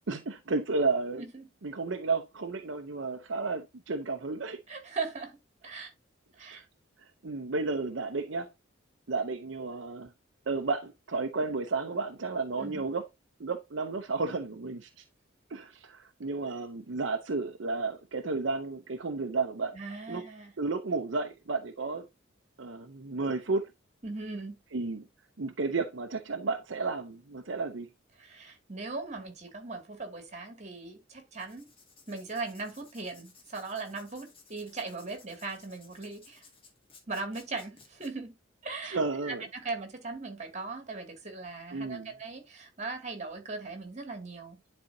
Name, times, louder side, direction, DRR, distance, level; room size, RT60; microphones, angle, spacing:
voice 1, 0.1-1.2 1.6-4.6 6.4-6.7 7.0-8.5 9.1-10.1 10.5-13.1 13.4-15.0 15.5-19.8 20.1-20.3 20.6-22.1 22.6-23.7 24.7-25.1 25.4-27.9 38.8-39.4 41.7-42.1, right 3 dB, 70° right, 0.7 m, -32 dB
voice 2, 4.7-5.4 5.6-5.9 6.4-6.6 12.6-12.8 19.7-20.5 24.0-24.6 28.2-31.7 32.1-36.4 37.1-38.3 38.6-44.6, right 3 dB, 35° right, 2.3 m, -39 dB
Writing, 31.3-38.1, left 4 dB, 30° left, 2.0 m, -58 dB
10.5 x 4.3 x 2.7 m
head